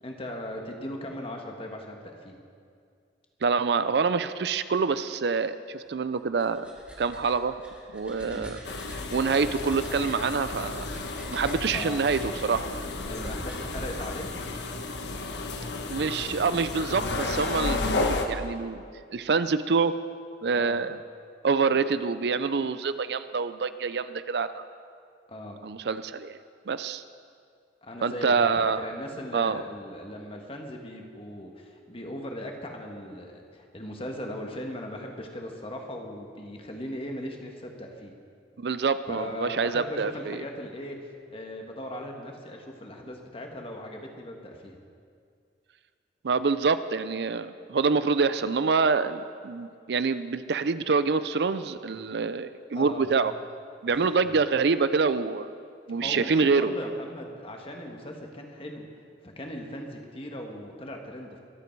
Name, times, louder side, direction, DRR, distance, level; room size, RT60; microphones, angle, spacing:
voice 1, 0.0-2.4 8.2-8.5 11.7-12.1 13.1-14.3 20.5-20.8 25.3-25.6 27.8-38.1 39.1-44.8 52.7-53.1 53.9-54.3 55.9-58.9 59.2-61.4, left 1 dB, 35° left, 2 dB, 1.6 m, -38 dB
voice 2, 3.4-6.7 7.0-7.6 7.9-8.6 9.1-10.9 11.3-12.7 15.9-18.8 19.1-19.9 20.4-21.0 21.4-24.6 25.6-26.4 26.7-27.0 28.0-28.8 29.3-29.6 38.6-40.4 46.2-53.3 53.8-55.5 55.9-56.7, right 4 dB, 65° right, 13 dB, 0.5 m, -26 dB
sound 1, 6.1-15.1, equal, 5° right, 2.3 m, -43 dB
sound 2, 8.6-18.3, left 3 dB, 75° left, 1.1 m, -32 dB
23.5 x 8.3 x 4.7 m, 2.2 s
head